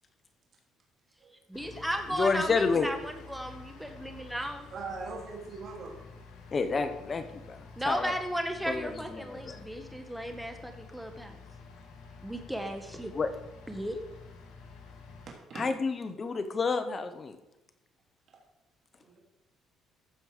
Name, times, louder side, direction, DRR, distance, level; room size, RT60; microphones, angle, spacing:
sound 1, 1.5-15.3, left 4 dB, 85° left, 2.3 m, -50 dB
voice 1, 1.5-4.6 7.8-11.4 12.2-13.1 13.7-14.0, equal, 5° right, 5 dB, 1.4 m, -35 dB
voice 2, 2.2-2.9 6.5-8.1 8.7-9.6 13.1-13.3 15.6-17.4, left 4 dB, 30° left, 8 dB, 1.1 m, -30 dB
voice 3, 4.4-5.9 15.5-15.6 19.0-19.2, right 4 dB, 55° right, -2 dB, 3.3 m, -41 dB
14.5 x 5.3 x 5.1 m, 0.93 s
cardioid pair, 115°, 0 cm